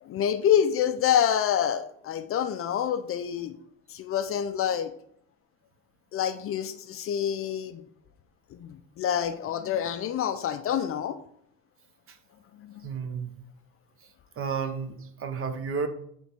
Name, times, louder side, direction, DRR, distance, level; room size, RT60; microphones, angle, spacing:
voice 1, 0.0-3.6 3.9-4.9 6.1-7.8 8.5-11.2 12.5-12.9, left 9 dB, 40° left, 11 dB, 0.5 m, -27 dB
voice 2, 12.8-13.3 14.4-15.9, right 5 dB, 40° right, 9 dB, 0.9 m, -31 dB
8.5 x 3.5 x 4.3 m, 0.70 s
supercardioid pair, 105°, 34 cm